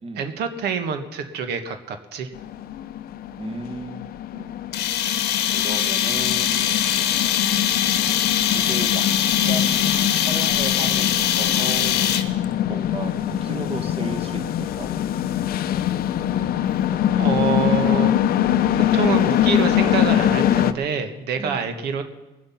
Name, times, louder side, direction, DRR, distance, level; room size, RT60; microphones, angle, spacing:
voice 1, 0.2-2.3 17.2-18.1 18.4-22.0, right 6 dB, 75° right, 7 dB, 1.4 m, -26 dB
sound 1, 2.3-20.7, left 11 dB, 60° left, 0.6 m, -23 dB
voice 2, 3.4-4.5 5.5-7.4 8.5-9.0 9.5-12.2 12.7-14.9 21.4-21.7, right 3 dB, 35° right, 6 dB, 1.4 m, -35 dB
sound 2, 4.7-12.5, left 10 dB, 80° left, 1.1 m, -22 dB
21.0 x 7.9 x 5.8 m, 1.1 s
cardioid pair, 110°, 17 cm